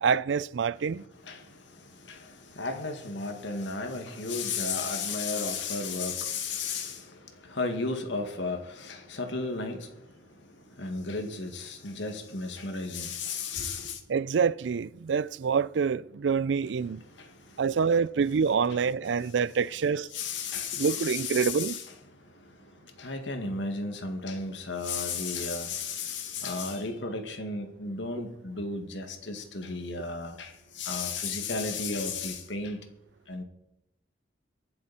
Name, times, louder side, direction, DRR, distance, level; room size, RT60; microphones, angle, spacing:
voice 1, 0.0-1.0 14.1-17.0 17.6-20.1 20.8-21.8, right 6 dB, 80° right, 0.4 m, -26 dB
voice 2, 1.2-9.9 10.8-14.0 17.1-17.3 18.7-18.8 20.1-21.9 23.0-32.8 33.3-33.4, left 4 dB, 85° left, 2.1 m, -34 dB
22.5 x 7.9 x 4.3 m
head